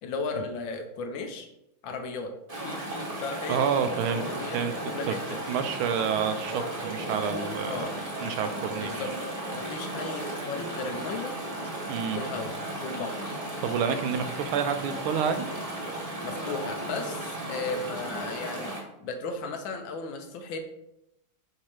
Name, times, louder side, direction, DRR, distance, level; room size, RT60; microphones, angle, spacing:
voice 1, 0.0-1.5 1.8-2.3 2.6-5.4 7.6-8.0 8.8-9.1 9.5-11.3 12.1-12.5 12.8-13.3 16.2-18.7 19.0-20.6, left 4 dB, 70° left, 5 dB, 1.4 m, -35 dB
Chatter / Stream, 2.5-18.8, right 1 dB, 25° right, 0.8 m, -35 dB
voice 2, 3.5-4.7 5.1-5.2 5.5-7.9 8.2-9.1 11.9-12.2 13.6-15.5, right 7 dB, 90° right, 9 dB, 1.5 m, -29 dB
7.3 x 2.8 x 4.8 m, 0.84 s
omnidirectional pair, 2.3 m